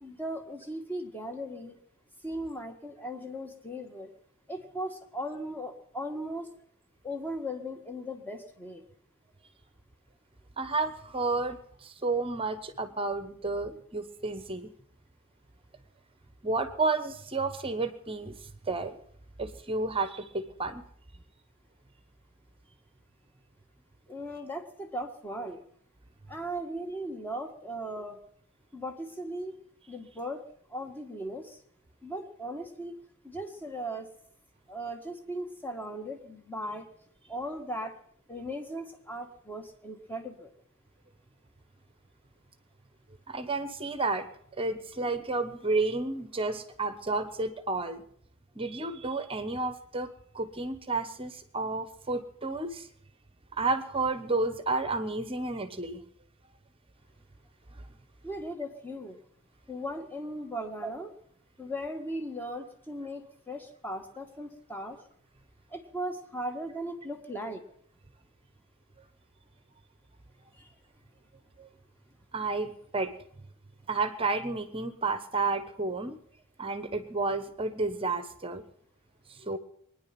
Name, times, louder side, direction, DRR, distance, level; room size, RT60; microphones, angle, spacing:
voice 1, 0.0-1.7 2.2-4.1 4.5-6.5 7.0-8.8 24.1-25.6 26.3-28.2 28.7-29.6 29.9-30.4 30.7-31.6 32.0-33.0 33.2-34.1 34.7-36.9 37.3-37.9 38.3-40.5 58.2-59.2 59.7-61.1 61.6-65.0 65.7-67.6, equal, 10° left, 4 dB, 1.7 m, -37 dB
voice 2, 10.6-14.7 16.4-18.4 18.7-19.0 19.4-20.8 43.3-44.3 44.6-48.0 48.5-50.1 50.3-52.9 53.6-56.0 60.8-60.9 71.6-71.7 72.3-73.1 73.9-76.2 76.6-78.6 79.3-79.6, right 3 dB, 25° right, 10 dB, 1.1 m, -31 dB
22.5 x 10.0 x 6.0 m, 0.65 s
head